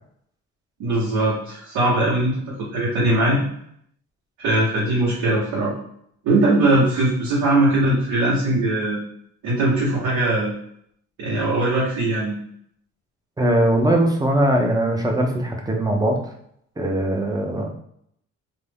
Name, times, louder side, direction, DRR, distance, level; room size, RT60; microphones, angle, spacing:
voice 1, 0.8-2.3 2.7-3.4 4.4-5.7 6.2-9.0 9.4-10.5 11.2-12.4, right 2 dB, 85° right, -8 dB, 1.0 m, -20 dB
voice 2, 13.4-16.2 16.8-17.7, right 1 dB, 15° right, 1 dB, 0.5 m, -20 dB
2.5 x 2.1 x 3.3 m, 0.69 s
cardioid pair, 90°, 30 cm